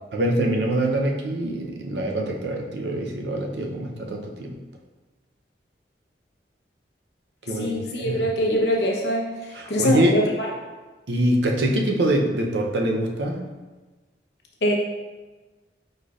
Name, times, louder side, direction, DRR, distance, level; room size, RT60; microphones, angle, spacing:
voice 1, 0.1-4.6 7.5-8.2 9.5-10.1 11.1-13.4, right 1 dB, 75° right, 1 dB, 0.6 m, -24 dB
voice 2, 7.6-9.3 9.7-10.5 14.6-14.7, left 1 dB, 70° left, -2 dB, 0.9 m, -23 dB
4.9 x 4.3 x 2.4 m, 1.2 s
head